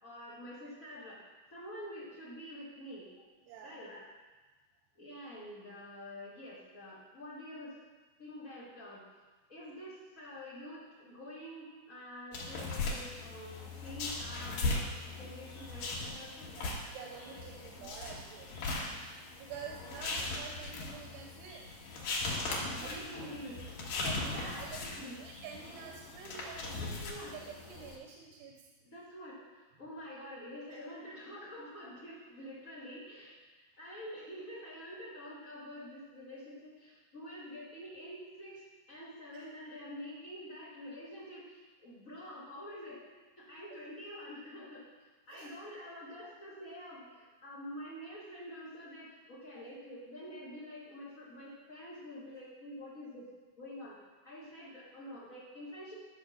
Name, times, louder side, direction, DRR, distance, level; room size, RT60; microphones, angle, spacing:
voice 1, 0.0-1.2 1.5-3.2 3.6-4.1 4.9-7.8 8.2-9.0 9.5-16.5 17.3-17.9 22.7-23.7 24.2-25.2 26.8-27.4 28.8-43.0 43.4-44.8 45.3-53.3 53.6-54.0 54.2-55.9, equal, 85° left, -8 dB, 0.7 m, -47 dB
voice 2, 3.4-3.8 16.6-18.8 19.4-21.6 22.1-22.2 22.8-23.0 24.0-24.8 25.2-26.8 27.3-28.5 43.7-43.8 45.3-45.5, right 6 dB, 80° right, 0 dB, 2.8 m, -48 dB
sound 1, 12.3-28.0, left 3 dB, 65° left, 2.9 m, -39 dB
11.0 x 4.4 x 6.4 m, 1.3 s
omnidirectional pair, 4.6 m